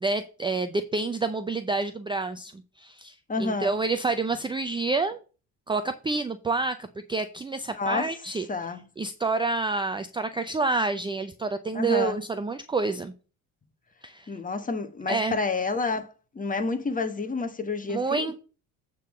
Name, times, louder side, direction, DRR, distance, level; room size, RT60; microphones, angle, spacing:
voice 1, 0.0-2.5 2.8-5.2 5.7-8.5 9.0-13.1 14.0-14.3 15.1-15.4 17.9-18.4, right 3 dB, 15° right, 0.5 m, -28 dB
voice 2, 3.3-3.8 7.7-8.1 8.5-8.9 11.7-12.2 14.3-16.1 16.3-18.3, left 3 dB, 20° left, 1.3 m, -29 dB
8.4 x 3.8 x 6.1 m
cardioid pair, 110°, 37 cm